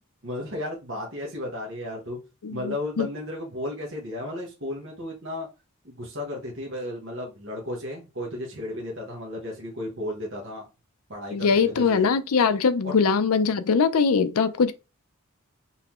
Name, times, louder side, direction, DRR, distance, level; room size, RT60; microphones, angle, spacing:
voice 1, 0.2-2.2 2.5-5.5 5.8-10.7 11.1-12.1 12.8-12.9, left 1 dB, 55° right, 1.2 m, -34 dB
voice 2, 2.4-3.1 11.3-14.7, left 5 dB, 85° left, 0.5 m, -22 dB
5.5 x 3.0 x 3.0 m
head